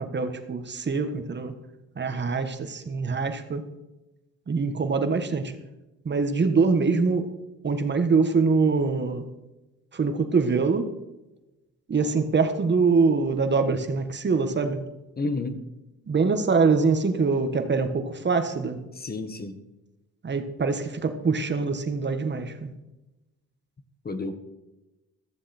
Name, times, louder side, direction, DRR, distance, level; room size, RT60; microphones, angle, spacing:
voice 1, 0.0-1.5 1.9-3.7 4.5-5.5 6.0-7.4 7.6-9.3 9.9-10.9 11.9-14.8 16.1-18.8 20.2-22.7, right 4 dB, 35° right, 7 dB, 1.7 m, -24 dB
voice 2, 15.2-15.6 19.0-19.6 24.0-24.3, left 3 dB, 30° left, 9 dB, 1.6 m, -30 dB
14.5 x 14.5 x 4.5 m, 1.0 s
cardioid pair, 90°, 30 cm